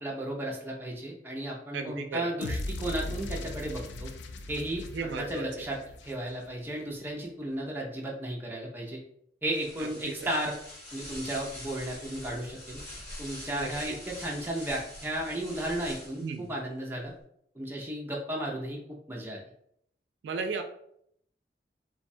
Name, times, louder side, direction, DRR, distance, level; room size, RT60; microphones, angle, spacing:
voice 1, 0.0-4.1 4.5-4.8 5.2-5.8 6.0-9.0 9.4-10.6 10.9-12.8 13.2-17.1 17.6-18.8 19.1-19.4, right 1 dB, 10° right, -2 dB, 0.4 m, -34 dB
voice 2, 1.7-2.3 4.9-5.5 9.8-9.9 10.2-10.3 13.5-14.0 16.2-16.5 20.2-20.6, right 4 dB, 85° right, 5 dB, 0.4 m, -35 dB
sound 1, 2.4-6.6, left 2 dB, 80° left, 0.3 m, -38 dB
sound 2, 9.5-16.4, left 1 dB, 40° left, 1.0 m, -44 dB
2.6 x 2.1 x 2.6 m, 0.71 s
head